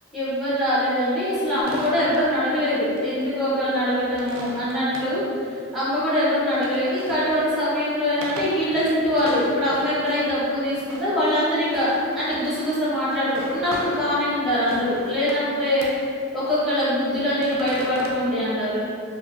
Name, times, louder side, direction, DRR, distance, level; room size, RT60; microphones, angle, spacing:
voice 1, 0.1-15.9 16.3-18.8, left 1 dB, ahead, -11 dB, 0.7 m, -23 dB
sound 1, 1.6-2.3 3.0-3.3 3.6-5.2 6.3-7.5 8.0-14.2 14.6-15.5 15.8-16.1 16.4-16.9 17.3-18.1, right 2 dB, 65° right, 0.3 m, -39 dB
2.4 x 2.3 x 2.4 m, 2.3 s
head